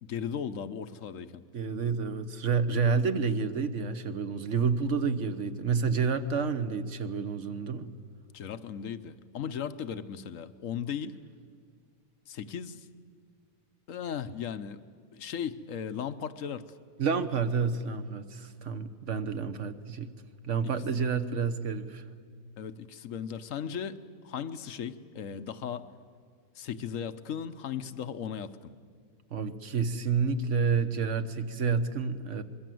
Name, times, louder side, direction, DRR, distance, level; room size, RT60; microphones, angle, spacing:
voice 1, 0.0-1.4 8.3-11.2 12.3-12.9 13.9-14.8 15.1-16.7 20.6-20.7 22.6-25.9 26.6-28.7, left 8 dB, 60° left, 11 dB, 1.1 m, -37 dB
voice 2, 1.5-7.9 17.0-20.1 20.4-22.0 29.3-32.4, right 5 dB, 50° right, 10 dB, 1.2 m, -29 dB
25.0 x 22.5 x 7.7 m, 2.1 s
omnidirectional pair, 1.8 m